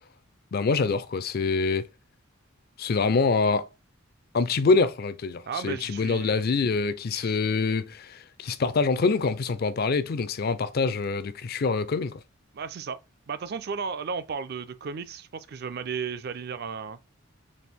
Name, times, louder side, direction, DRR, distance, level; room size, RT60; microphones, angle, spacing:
voice 1, 0.5-1.9 2.8-3.7 4.3-12.2, left 4 dB, 50° left, 0.4 m, -25 dB
voice 2, 5.5-6.5 7.1-7.4 12.5-13.0 13.3-17.0, right 5 dB, 50° right, 0.4 m, -34 dB
4.2 x 2.5 x 3.5 m
head